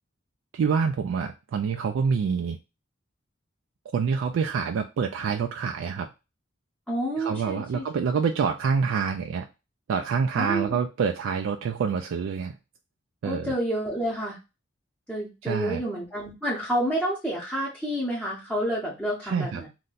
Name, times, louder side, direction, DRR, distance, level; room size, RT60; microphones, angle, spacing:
voice 1, 0.5-2.6 3.9-6.1 7.2-9.5 9.9-12.6 13.2-13.5 15.4-15.8 19.2-19.6, right 6 dB, 80° right, 5 dB, 0.3 m, -26 dB
voice 2, 6.9-7.9 10.4-10.8 13.2-14.4 15.1-19.7, right 1 dB, ahead, -7 dB, 0.7 m, -29 dB
2.5 x 2.2 x 3.8 m, 0.27 s
head